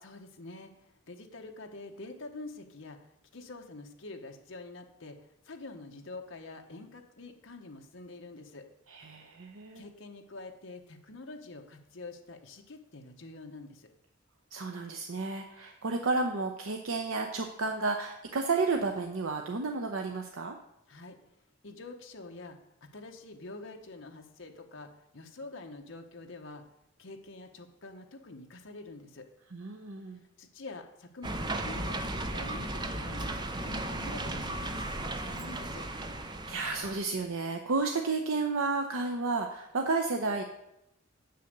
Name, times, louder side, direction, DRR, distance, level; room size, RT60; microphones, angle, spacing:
voice 1, 0.0-8.7 9.7-13.9 20.9-21.2 21.6-22.6 22.9-26.6 27.0-29.3 30.4-33.3 33.6-35.9, left 2 dB, 65° left, 3 dB, 1.0 m, -46 dB
voice 2, 8.9-9.8 14.5-20.5 29.5-30.2 36.5-40.4, right 3 dB, 75° right, 3 dB, 0.8 m, -32 dB
sound 1, 31.2-37.0, right 1 dB, 20° right, 0.6 m, -35 dB
7.9 x 6.7 x 6.7 m, 0.84 s
head